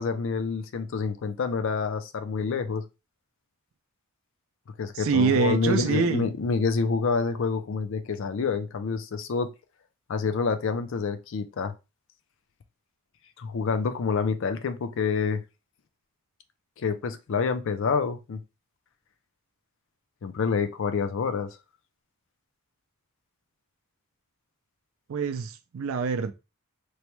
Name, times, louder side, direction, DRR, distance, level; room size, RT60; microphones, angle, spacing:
voice 1, 0.0-2.8 4.8-9.5 10.1-11.7 13.4-15.4 16.8-18.4 20.2-21.5, left 5 dB, 60° left, 0.4 m, -27 dB
voice 2, 4.9-6.3 25.1-26.3, right 5 dB, 65° right, 0.4 m, -25 dB
3.0 x 2.2 x 3.0 m
head